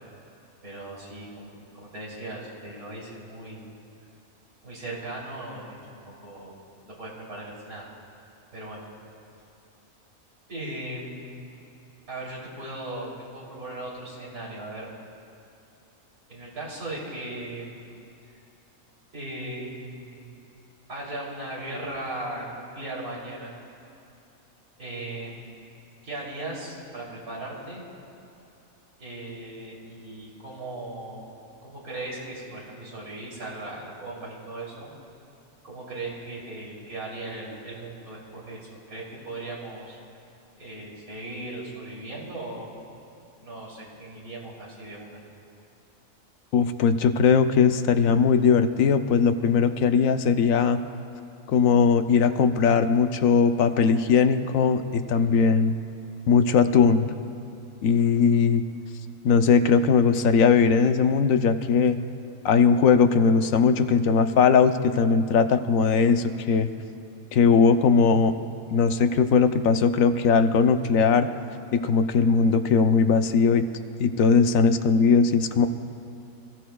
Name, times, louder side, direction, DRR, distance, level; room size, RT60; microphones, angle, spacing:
voice 1, 0.6-3.7 4.6-6.6 6.9-7.9 8.5-8.9 10.5-11.4 12.1-14.9 16.3-17.9 19.1-20.5 20.9-23.5 24.8-25.5 26.0-27.8 29.0-31.2 31.6-34.9 35.6-40.0 40.5-42.7 43.4-45.2, right 2 dB, 85° right, -5 dB, 3.6 m, -38 dB
voice 2, 46.5-50.8 51.5-55.7 56.3-57.1 57.8-58.6 59.2-62.0 62.4-66.7 67.3-68.3 68.7-71.3 71.7-73.7 74.0-75.7, left 5 dB, 75° left, 9 dB, 1.0 m, -20 dB
27.5 x 15.0 x 2.3 m, 2.8 s
omnidirectional pair, 1.5 m